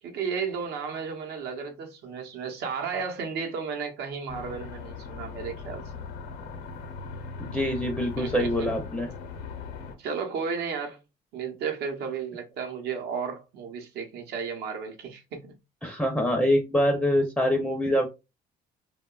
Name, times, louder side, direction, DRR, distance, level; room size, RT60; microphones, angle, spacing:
voice 1, 0.0-5.8 8.2-8.7 10.0-11.0 11.3-15.5, right 6 dB, 75° right, 0.7 m, -33 dB
sound 1, 4.3-10.0, left 5 dB, 80° left, 0.7 m, -39 dB
voice 2, 7.4-9.1 15.8-18.1, equal, 5° left, 0.4 m, -25 dB
2.8 x 2.2 x 2.2 m
cardioid pair, 110°, 17 cm